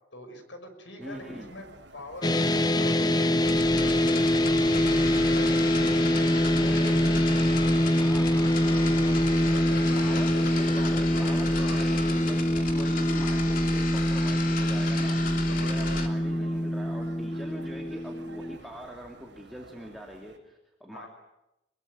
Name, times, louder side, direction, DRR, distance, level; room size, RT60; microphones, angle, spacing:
voice 1, 0.1-1.7 1.9-7.1 9.4-10.5 11.6-11.8 15.4-16.0 20.9-21.1, left 1 dB, 75° left, 7 dB, 6.2 m, -44 dB
voice 2, 1.0-1.5 6.6-7.1 7.8-9.2 9.9-21.1, equal, ahead, 0 dB, 2.7 m, -43 dB
sound 1, 1.0-20.4, right 2 dB, 70° right, 5.5 m, -51 dB
sound 2, 2.2-18.6, equal, 20° left, 0.9 m, -24 dB
sound 3, 3.4-16.1, left 4 dB, 45° left, 3.3 m, -35 dB
25.5 x 23.0 x 9.5 m, 0.92 s
head